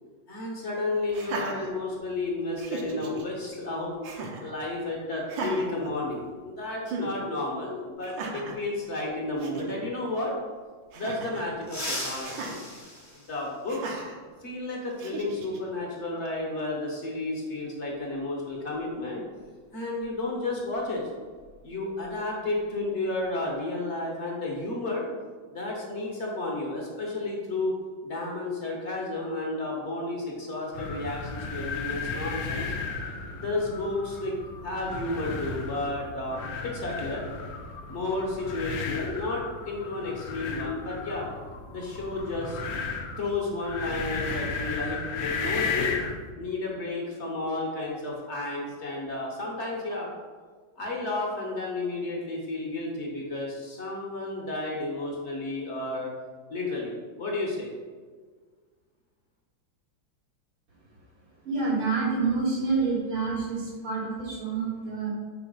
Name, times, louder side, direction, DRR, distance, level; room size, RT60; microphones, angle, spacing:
voice 1, 0.3-4.0 4.4-10.3 10.9-12.6 13.1-14.0 14.4-19.2 19.7-21.1 21.6-25.1 25.5-27.7 28.0-32.7 33.3-34.3 34.6-37.3 37.9-41.3 41.7-42.6 43.2-45.9 46.4-50.1 50.8-56.1 56.5-56.9 57.2-57.7, left 2 dB, 40° left, -2 dB, 1.2 m, -32 dB
Laughter, 1.1-2.2 2.6-3.2 4.0-4.5 5.2-6.5 6.9-7.1 8.0-8.6 9.1-9.2 9.4-9.8 10.9-11.5 12.2-12.6 13.7-14.2 15.0-15.6, right 3 dB, 70° right, 1.4 m, -36 dB
sound 1, 11.6-14.0 15.7-15.8 17.0-17.1 18.7-18.9 19.2-19.5 19.9-22.1 22.4-22.6 23.1-23.5, left 1 dB, 15° left, 0.6 m, -39 dB
sound 2, 30.7-46.2, left 4 dB, 70° left, 0.9 m, -35 dB
voice 2, 61.4-65.1, right 4 dB, 90° right, -6 dB, 2.8 m, -28 dB
4.9 x 4.2 x 5.4 m, 1.5 s
omnidirectional pair, 2.2 m